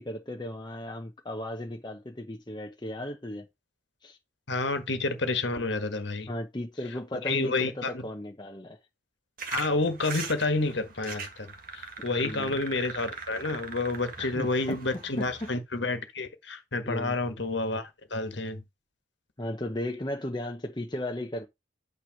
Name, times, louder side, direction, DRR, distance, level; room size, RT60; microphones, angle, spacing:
voice 1, 0.0-3.5 4.0-4.2 6.3-8.8 12.2-12.6 14.2-15.5 16.9-17.2 19.4-21.5, left 1 dB, 20° left, 0.8 m, -36 dB
voice 2, 4.5-6.3 7.2-8.0 9.5-18.6, left 3 dB, 60° left, 1.5 m, -29 dB
sound 1, 9.4-15.5, right 5 dB, 45° right, 1.6 m, -41 dB
9.1 x 3.1 x 5.8 m
head